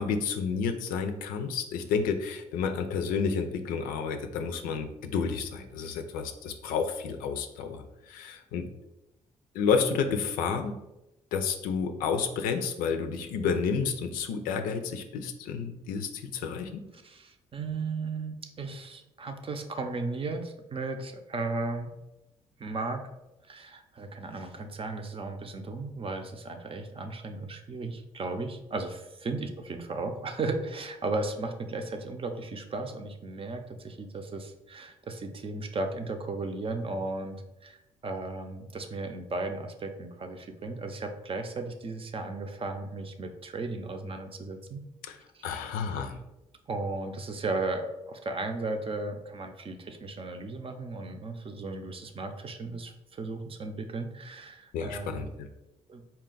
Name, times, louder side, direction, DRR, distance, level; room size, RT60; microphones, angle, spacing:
voice 1, 0.0-8.7 9.5-10.7 11.3-16.8 45.0-45.2 45.4-46.2 54.7-55.5, left 6 dB, 85° left, 7 dB, 0.4 m, -30 dB
voice 2, 17.0-21.9 22.6-23.0 23.4-37.8 38.0-44.8 45.3-45.6 46.7-55.3 55.9-56.0, right 3 dB, 40° right, 6 dB, 0.6 m, -35 dB
4.2 x 2.3 x 3.8 m, 0.95 s
supercardioid pair, 60°, 14 cm